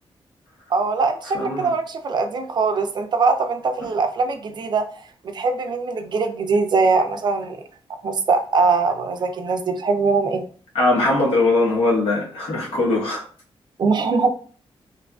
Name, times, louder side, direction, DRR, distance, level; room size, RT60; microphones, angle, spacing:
voice 1, 0.7-4.9 5.2-7.6 8.0-10.5 13.8-14.3, right 4 dB, 50° right, 0.4 m, -21 dB
voice 2, 1.3-1.7 10.7-13.3, left 2 dB, 85° left, 1.0 m, -20 dB
2.7 x 2.3 x 2.2 m
wide cardioid pair, 135°, 10 cm